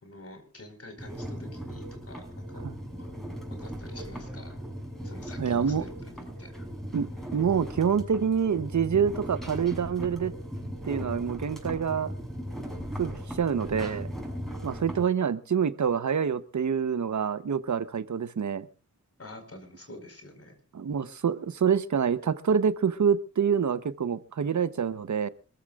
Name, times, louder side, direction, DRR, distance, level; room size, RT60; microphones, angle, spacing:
voice 1, 0.0-2.6 3.0-3.1 3.6-4.6 5.0-6.5 19.2-20.6, left 1 dB, 55° left, 6 dB, 4.8 m, -47 dB
sound 1, 1.0-15.1, equal, ahead, 6.3 m, -38 dB
voice 2, 5.4-5.8 6.9-10.3 10.8-12.1 13.0-14.1 14.6-18.7 20.7-25.3, right 7 dB, 75° right, 13 dB, 0.9 m, -26 dB
26.5 x 14.0 x 2.5 m, 0.34 s
wide cardioid pair, 75°, 29 cm